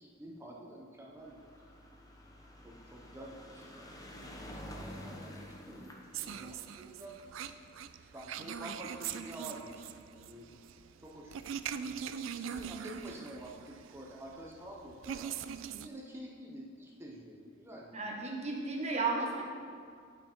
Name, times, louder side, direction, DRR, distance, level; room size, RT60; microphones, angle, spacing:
voice 1, 0.0-1.7 2.6-4.0 4.4-5.9 6.2-7.1 8.1-10.5 11.0-11.4 11.8-11.9 12.3-15.3 15.8-18.0, right 1 dB, 15° right, -2 dB, 0.7 m, -48 dB
sound 1, 1.1-9.6 10.4-10.5 10.7-10.8 11.1-11.2, equal, 20° left, 0.8 m, -50 dB
sound 2, 6.1-15.9, right 8 dB, 75° right, 0.3 m, -42 dB
voice 2, 17.9-19.4, right 3 dB, 35° right, -1 dB, 1.3 m, -33 dB
9.5 x 5.7 x 4.4 m, 2.2 s
head